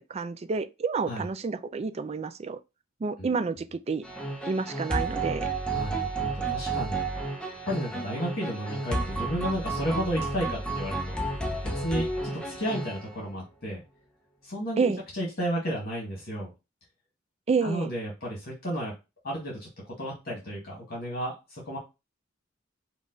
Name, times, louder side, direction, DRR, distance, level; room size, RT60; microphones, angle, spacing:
voice 1, 0.0-2.6 3.0-4.0 4.5-5.5 14.8-15.0 17.5-17.9, right 4 dB, 30° right, 0.4 m, -29 dB
sound 1, 4.0-13.2, right 2 dB, 5° left, 0.7 m, -31 dB
voice 2, 5.7-7.1 7.6-11.2 11.6-13.8 14.4-16.5 17.6-18.9 19.2-19.7 20.0-21.8, equal, 50° left, 1.7 m, -32 dB
5.3 x 2.4 x 3.8 m
head